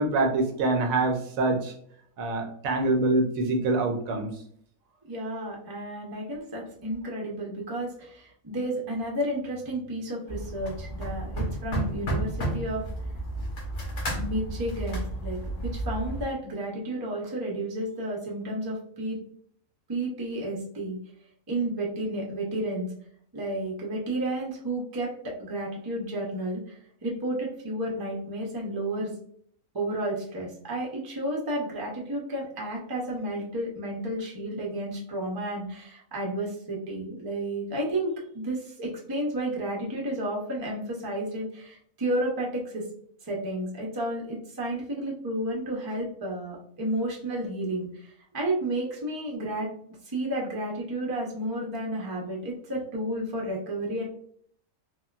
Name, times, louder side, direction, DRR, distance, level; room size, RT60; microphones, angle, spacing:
voice 1, 0.0-1.7 2.2-4.3, right 2 dB, 75° right, 3 dB, 1.0 m, -25 dB
voice 2, 5.0-12.8 14.2-19.2 19.9-21.0 21.5-22.9 23.3-29.1 29.7-42.9 43.2-49.7 50.0-54.0, right 1 dB, 25° right, -2 dB, 0.5 m, -32 dB
sound 1, 10.3-16.2, right 1 dB, 65° left, 1.3 m, -32 dB
3.6 x 2.2 x 2.3 m, 0.63 s
omnidirectional pair, 1.5 m